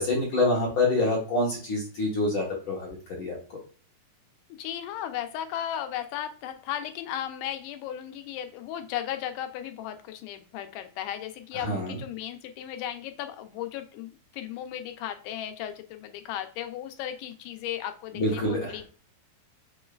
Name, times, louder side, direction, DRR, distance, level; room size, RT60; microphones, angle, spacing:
voice 1, 0.0-3.6 11.5-12.0 18.1-18.8, left 2 dB, 65° left, -3 dB, 1.3 m, -27 dB
voice 2, 4.6-18.9, left 11 dB, 85° left, 7 dB, 2.1 m, -35 dB
6.2 x 3.1 x 2.3 m, 0.40 s
omnidirectional pair, 3.6 m